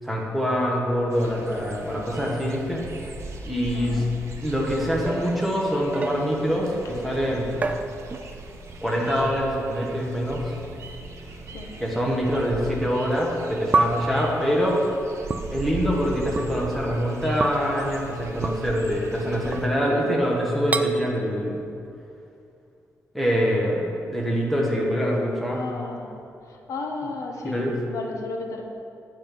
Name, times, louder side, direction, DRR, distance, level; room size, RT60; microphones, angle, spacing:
voice 1, 0.0-2.8 3.4-4.0 4.4-7.5 8.8-10.5 11.8-14.8 15.5-21.6 23.1-25.6 27.4-27.8, equal, ahead, -3 dB, 1.3 m, -24 dB
sound 1, 1.1-19.7, right 2 dB, 60° right, 0.9 m, -40 dB
voice 2, 3.7-4.1 11.5-11.7 25.5-26.1 26.4-28.6, left 3 dB, 75° left, 2 dB, 0.9 m, -34 dB
sound 2, 5.0-6.6 7.6-8.5 8.8-9.2 10.2-10.3 11.1-11.2 12.8-12.9 13.7-14.2 15.3-15.4 16.3-16.5 17.4-17.7 18.4-18.6 19.5-20.0 20.7-20.9, right 3 dB, 25° right, 0.3 m, -28 dB
8.9 x 5.3 x 6.0 m, 2.6 s
wide cardioid pair, 165°, 5 cm